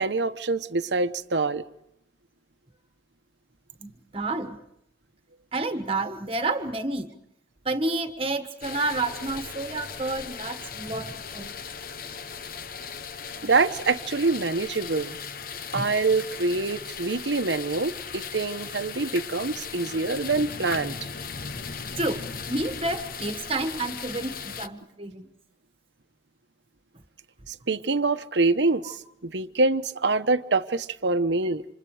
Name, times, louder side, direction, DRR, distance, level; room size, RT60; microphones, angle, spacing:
voice 1, 0.0-1.6 13.4-15.2 15.7-20.9 27.5-31.7, right 3 dB, 85° right, 9 dB, 1.0 m, -25 dB
voice 2, 3.8-4.6 5.5-7.1 7.6-11.6 15.7-15.9 21.5-21.6 21.9-25.3 28.8-28.9, right 2 dB, 30° right, 7 dB, 1.5 m, -30 dB
sound 1, 8.6-24.7, left 6 dB, 55° left, 0.9 m, -37 dB
28.5 x 26.5 x 4.9 m, 0.78 s
head